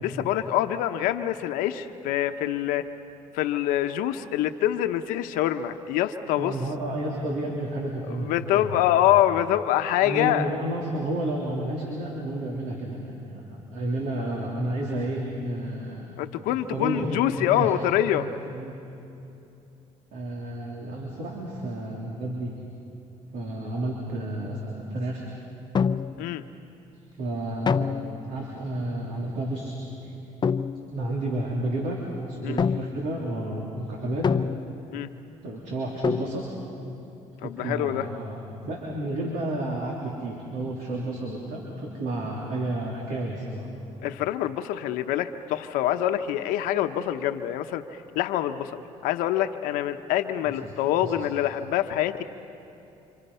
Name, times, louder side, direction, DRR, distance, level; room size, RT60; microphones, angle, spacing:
voice 1, 0.0-2.8 3.3-6.5 8.2-10.5 16.2-18.3 26.2-26.4 32.4-32.6 34.9-35.1 37.4-38.1 44.0-47.8 48.1-52.2, left 12 dB, 85° left, 8 dB, 1.0 m, -25 dB
voice 2, 6.4-8.8 10.0-13.4 13.7-16.1 16.4-17.7 18.5-18.8 20.1-22.5 23.3-25.2 27.2-29.7 30.0-30.1 30.9-32.0 32.3-34.4 35.4-36.4 37.4-38.4 38.6-39.9 40.2-43.7 50.4-50.7 51.0-51.1, right 1 dB, 70° right, -2 dB, 3.5 m, -31 dB
sound 1, 25.7-26.4 27.7-28.4 30.4-31.0 32.6-33.2 34.2-35.0 36.0-36.6, left 6 dB, 30° left, 0.6 m, -26 dB
29.0 x 26.5 x 5.7 m, 2.8 s
cardioid pair, 90°, 14 cm